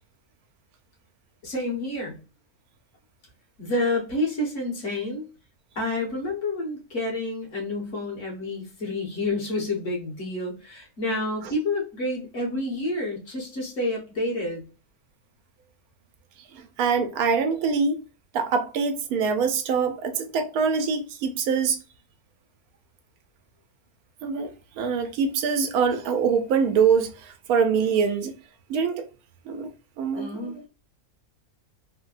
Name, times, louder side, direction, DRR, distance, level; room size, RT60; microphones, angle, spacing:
voice 1, 1.4-2.2 3.6-5.3 5.7-14.6 30.1-30.5, left 2 dB, 55° left, 1.5 m, -29 dB
voice 2, 16.5-18.0 18.3-21.8 24.2-28.3 28.7-29.1 29.5-29.7 30.0-30.3 30.5-30.6, right 6 dB, 80° right, 1.0 m, -24 dB
3.4 x 2.2 x 2.4 m
omnidirectional pair, 1.5 m